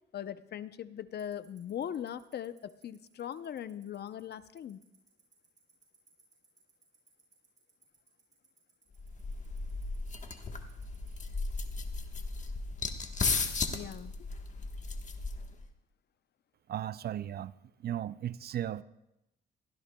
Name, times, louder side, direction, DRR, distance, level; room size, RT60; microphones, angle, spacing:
voice 1, 0.1-4.8 13.7-14.1, left 9 dB, 55° left, 13 dB, 0.7 m, -40 dB
Tick-tock, 1.2-11.1, right 5 dB, 35° right, 7.0 m, -63 dB
sound 1, 9.0-15.7, left 4 dB, 40° left, 1.3 m, -35 dB
voice 2, 16.7-17.6 17.8-18.8, right 11 dB, 55° right, 16 dB, 0.5 m, -36 dB
23.0 x 15.5 x 2.3 m, 0.84 s
cardioid pair, 90°, 20 cm